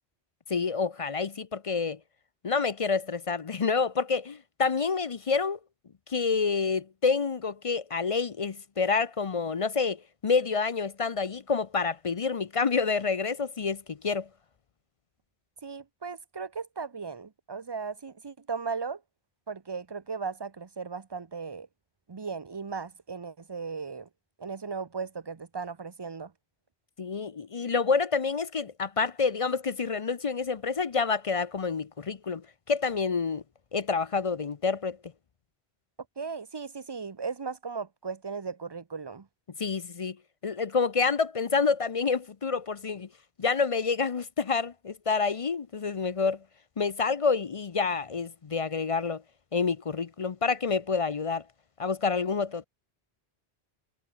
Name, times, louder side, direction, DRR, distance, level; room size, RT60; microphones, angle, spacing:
voice 1, 0.5-2.0 2.4-5.6 6.1-14.3 27.0-32.4 32.7-33.4 33.7-35.0 39.6-40.2 40.4-43.1 43.4-46.4 46.8-49.2 49.5-51.4 51.8-52.6, left 5 dB, 40° left, 0.6 m, -28 dB
voice 2, 15.6-19.0 19.5-21.7 22.1-24.1 24.4-26.3 36.2-39.3, right 5 dB, 25° right, 0.7 m, -37 dB
omnidirectional pair, 1.1 m